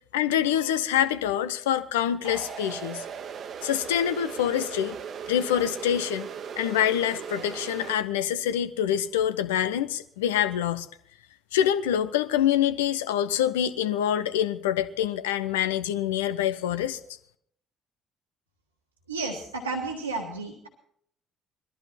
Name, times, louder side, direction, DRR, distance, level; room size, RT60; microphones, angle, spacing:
voice 1, 0.1-3.0 3.6-5.0 5.3-6.3 6.6-10.9 11.5-17.0, left 10 dB, 70° left, 0.7 m, -26 dB
sound 1, 2.2-7.9, right 7 dB, 50° right, 1.1 m, -38 dB
voice 2, 19.1-20.7, right 3 dB, 85° right, 1.6 m, -32 dB
21.0 x 14.0 x 4.3 m
figure-of-eight pair, 50°, 0 cm